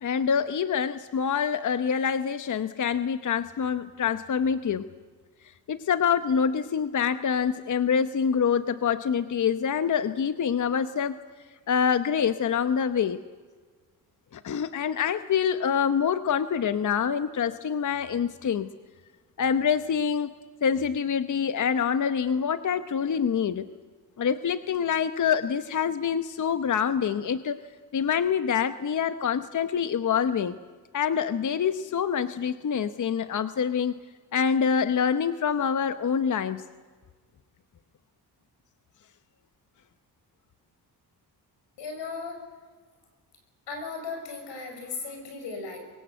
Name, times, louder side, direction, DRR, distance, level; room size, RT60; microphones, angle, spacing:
voice 1, 0.0-4.9 5.7-11.2 11.7-13.2 14.3-18.7 19.4-20.3 20.6-23.7 24.2-27.6 27.9-30.6 30.9-34.0 34.3-36.6, left 7 dB, 45° left, 11 dB, 0.9 m, -26 dB
voice 2, 41.8-42.5 43.7-45.8, left 4 dB, 90° left, 5 dB, 5.9 m, -36 dB
24.0 x 22.5 x 8.0 m, 1.5 s
cardioid pair, 85°, 41 cm